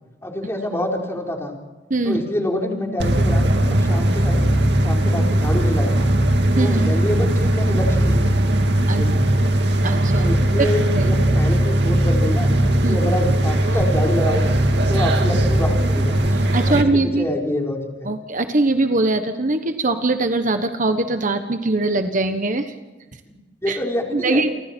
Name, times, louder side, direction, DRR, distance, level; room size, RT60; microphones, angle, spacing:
voice 1, 0.2-1.5 2.0-4.5 4.8-6.1 6.5-8.3 8.9-9.4 10.2-12.5 12.8-14.5 14.9-16.3 16.6-18.1 23.6-24.5, left 1 dB, 15° left, 0 dB, 4.5 m, -26 dB
sound 1, 3.0-16.8, right 1 dB, 65° right, 2.4 m, -18 dB
voice 2, 6.6-7.0 8.5-8.6 8.9-9.0 9.8-10.3 10.6-10.7 10.9-11.2 12.8-13.0 16.5-17.3 18.0-22.7 23.7-23.8 24.1-24.5, right 2 dB, 45° right, 8 dB, 1.2 m, -21 dB
29.5 x 24.5 x 4.5 m, 1.2 s
head